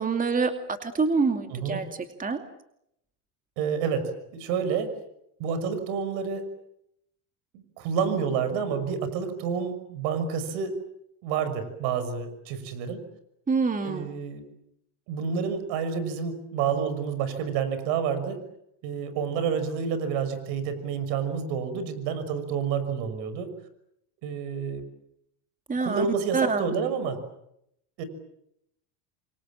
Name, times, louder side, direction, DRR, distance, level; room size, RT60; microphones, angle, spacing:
voice 1, 0.0-1.9 2.2-2.4 13.5-14.1 25.7-26.1 26.3-26.6, right 4 dB, 15° right, 7 dB, 2.5 m, -26 dB
voice 2, 1.5-1.8 3.6-4.9 5.4-6.5 7.5-10.7 11.2-13.0 13.8-14.4 15.1-18.4 18.8-23.5 24.2-24.8 25.8-27.2 28.0-28.1, right 6 dB, 70° right, 12 dB, 6.1 m, -29 dB
29.0 x 26.0 x 7.5 m, 0.78 s
supercardioid pair, 115°, 46 cm